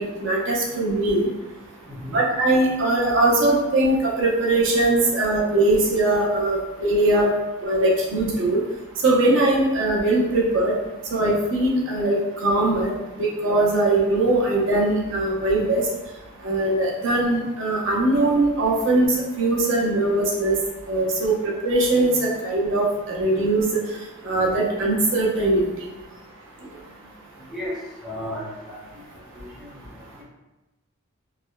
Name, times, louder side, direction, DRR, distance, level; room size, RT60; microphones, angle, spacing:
voice 1, 0.2-1.3 2.1-7.3 7.6-8.6 9.0-10.7 11.1-12.1 12.4-12.9 13.2-15.8 16.4-20.6 20.9-21.3 21.6-23.6 24.2-25.6, right 2 dB, 65° right, -4 dB, 0.6 m, -21 dB
voice 2, 1.9-2.2 27.5-27.7 28.0-28.8 29.3-29.7 30.2-30.3, left 1 dB, 5° right, -7 dB, 0.5 m, -33 dB
3.3 x 2.0 x 2.2 m, 1.1 s
head